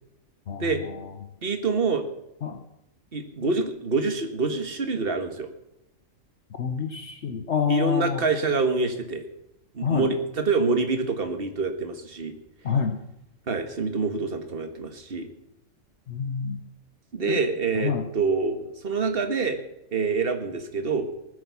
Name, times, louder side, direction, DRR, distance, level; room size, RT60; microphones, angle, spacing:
voice 1, 0.5-1.1 2.4-2.6 6.6-8.2 9.8-10.1 12.6-13.0 16.1-16.6 17.3-17.4 17.7-18.0, left 7 dB, 60° left, 6 dB, 1.3 m, -27 dB
voice 2, 1.4-2.1 3.1-5.5 7.7-9.2 9.7-12.4 13.5-15.3 17.1-19.6 19.9-21.1, right 4 dB, 45° right, 6 dB, 1.8 m, -26 dB
18.5 x 10.0 x 7.1 m, 0.86 s
omnidirectional pair, 1.4 m